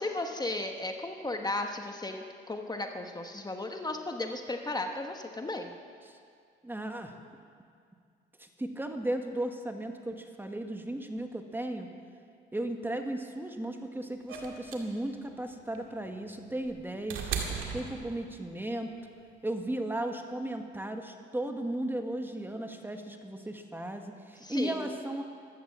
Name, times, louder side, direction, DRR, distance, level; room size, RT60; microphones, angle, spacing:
voice 1, 0.0-5.7 24.4-24.9, left 2 dB, 20° left, 4 dB, 1.1 m, -35 dB
voice 2, 6.6-7.1 8.4-11.9 12.5-17.3 17.7-18.9 19.4-25.2, right 1 dB, 10° right, 5 dB, 1.4 m, -35 dB
sound 1, 14.3-18.6 19.8-19.9, right 6 dB, 85° right, 2.0 m, -38 dB
14.0 x 12.5 x 7.4 m, 2.2 s
cardioid pair, 90°, 20 cm